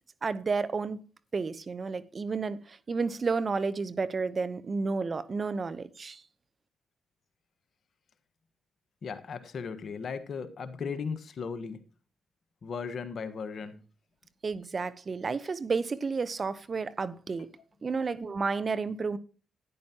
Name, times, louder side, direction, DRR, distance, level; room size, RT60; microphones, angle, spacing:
voice 1, 0.2-1.0 1.3-6.2 14.4-17.5 17.8-19.2, right 4 dB, 45° right, 0.9 m, -31 dB
voice 2, 9.0-11.8 12.6-13.8, left 5 dB, 60° left, 1.4 m, -36 dB
12.0 x 10.0 x 2.9 m
supercardioid pair, 55°, 0 cm